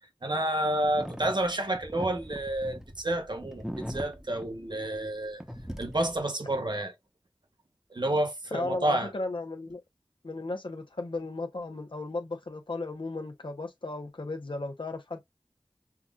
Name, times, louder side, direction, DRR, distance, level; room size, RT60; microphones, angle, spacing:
voice 1, 0.2-5.4 5.8-6.9 7.9-9.1, right 1 dB, 60° right, 1.0 m, -29 dB
sound 1, 0.8-5.2 5.4-6.2, equal, 5° right, 0.8 m, -40 dB
voice 2, 8.5-9.8 10.2-15.2, left 2 dB, 70° left, 0.8 m, -35 dB
5.8 x 2.5 x 2.3 m
wide cardioid pair, 40°, 9 cm